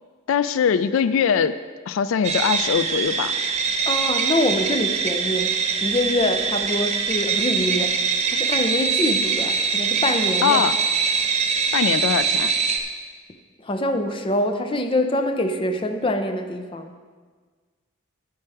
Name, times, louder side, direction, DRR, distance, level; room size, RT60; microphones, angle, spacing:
voice 1, 0.3-1.6 1.9-3.3 10.4-10.8 11.7-12.5, left 7 dB, 80° left, 14 dB, 0.3 m, -21 dB
sound 1, 2.2-12.8, right 5 dB, 30° right, 0.7 m, -23 dB
voice 2, 3.9-10.6 13.6-16.9, left 1 dB, 25° left, 7 dB, 0.5 m, -25 dB
8.9 x 8.6 x 4.8 m, 1.5 s
head